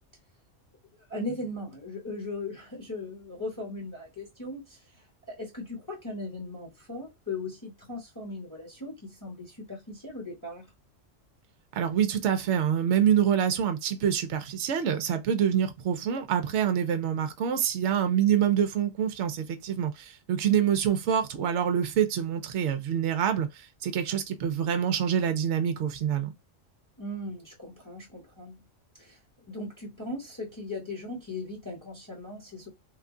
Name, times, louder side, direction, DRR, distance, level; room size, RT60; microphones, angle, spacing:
voice 1, 1.1-10.7 27.0-28.6 29.0-29.2 29.5-32.7, left 2 dB, 15° left, 1.1 m, -38 dB
voice 2, 11.7-26.3, right 9 dB, 65° right, 0.9 m, -26 dB
3.2 x 2.3 x 3.7 m
omnidirectional pair, 1.3 m